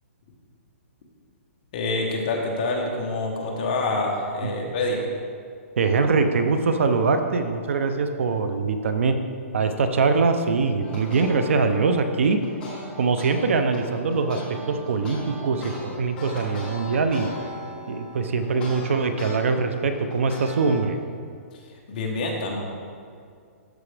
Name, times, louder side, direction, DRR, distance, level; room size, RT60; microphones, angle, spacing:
voice 1, 1.7-5.0 21.9-22.6, left 2 dB, 30° left, -1 dB, 1.0 m, -26 dB
voice 2, 5.8-9.1 9.5-12.4 13.0-14.4 14.7-17.3 17.9-21.0, right 4 dB, 60° right, 8 dB, 0.6 m, -23 dB
sound 1, 10.8-13.3 13.7-19.3 19.7-20.8, equal, 10° left, 1.3 m, -38 dB
13.0 x 4.9 x 3.3 m, 2.2 s
hypercardioid pair, 175°, 8 cm